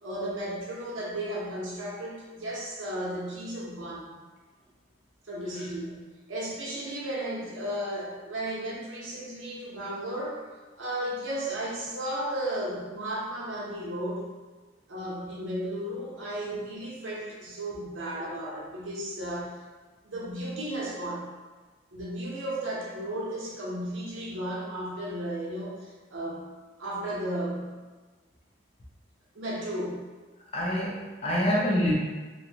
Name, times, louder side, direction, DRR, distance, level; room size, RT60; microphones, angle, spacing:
voice 1, 0.0-4.2 5.3-6.0 6.3-10.4 10.7-14.3 14.9-19.6 20.0-21.3 21.9-26.5 26.8-27.8 29.3-30.0 31.5-31.7, right 1 dB, 85° right, -5 dB, 0.8 m, -34 dB
voice 2, 30.5-31.9, left 1 dB, 30° left, -4 dB, 0.5 m, -26 dB
2.6 x 2.2 x 2.7 m, 1.3 s
head